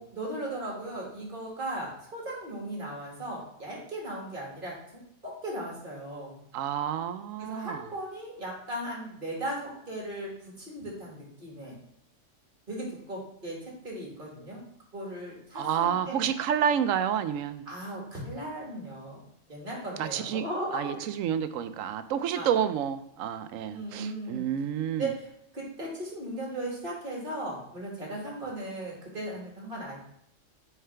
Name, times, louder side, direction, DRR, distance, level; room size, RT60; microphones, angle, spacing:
voice 1, 0.0-6.4 7.4-10.3 10.6-11.8 12.7-14.6 14.9-16.3 17.7-20.9 22.3-22.5 23.7-24.4 24.9-30.0, right 1 dB, 40° right, -3 dB, 2.2 m, -37 dB
voice 2, 6.5-7.8 15.5-17.6 20.0-20.4 20.7-25.1, right 9 dB, 85° right, 11 dB, 1.0 m, -29 dB
9.0 x 4.7 x 3.3 m, 0.73 s
omnidirectional pair, 1.3 m